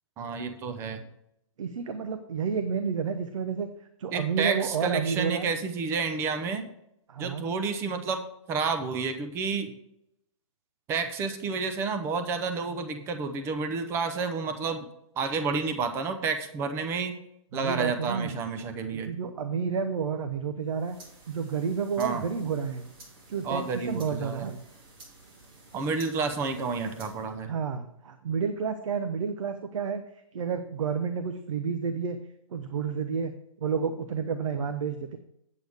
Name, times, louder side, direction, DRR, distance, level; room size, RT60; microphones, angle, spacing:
voice 1, 0.2-1.0 4.1-6.6 7.2-9.7 10.9-14.9 15.2-17.1 17.5-19.1 22.0-22.2 23.4-24.5 25.7-27.5, right 5 dB, 15° right, 7 dB, 0.7 m, -30 dB
voice 2, 1.6-3.7 4.0-5.5 7.1-7.5 17.5-18.4 18.9-21.0 21.3-22.9 23.3-24.6 27.5-30.0 30.3-32.2 32.5-35.2, right 6 dB, 65° right, 9 dB, 0.9 m, -30 dB
sound 1, 20.6-27.3, right 2 dB, 45° right, 2.6 m, -52 dB
8.6 x 7.8 x 3.5 m, 0.79 s
hypercardioid pair, 155°, 17 cm